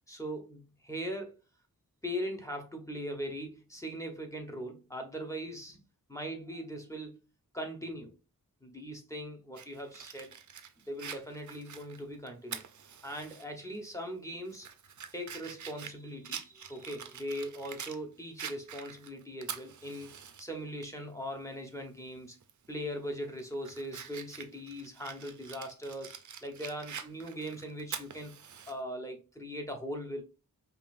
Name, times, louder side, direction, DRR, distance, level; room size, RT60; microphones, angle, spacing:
voice 1, 0.1-1.3 2.0-5.8 6.1-7.2 7.5-8.2 8.6-10.3 10.9-12.6 13.0-14.7 15.1-20.1 20.4-22.4 22.7-26.1 26.4-28.3 28.7-30.2, equal, 10° left, 0.8 m, -40 dB
Fire, 9.6-13.4 13.8-13.9 14.4-18.0 18.4-20.4 20.8-20.9 22.4-22.7 23.1-28.7, right 7 dB, 55° right, 0.5 m, -45 dB
5.2 x 2.5 x 2.5 m
wide cardioid pair, 95°, 36 cm